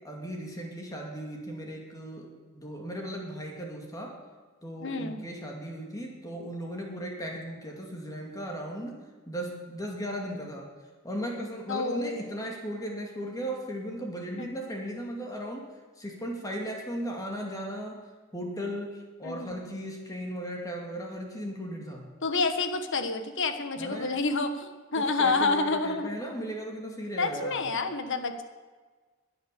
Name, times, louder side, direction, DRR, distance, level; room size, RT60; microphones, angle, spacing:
voice 1, 0.0-2.3 2.5-4.1 4.6-9.0 9.3-10.7 11.0-15.6 16.0-18.0 18.3-22.1 23.8-24.1 24.9-27.7, equal, 15° left, 0 dB, 2.4 m, -36 dB
voice 2, 4.8-5.2 11.7-12.3 14.4-14.6 19.2-19.5 22.2-26.1 27.2-28.4, left 3 dB, 60° left, 8 dB, 1.4 m, -29 dB
21.5 x 8.2 x 6.9 m, 1.4 s
head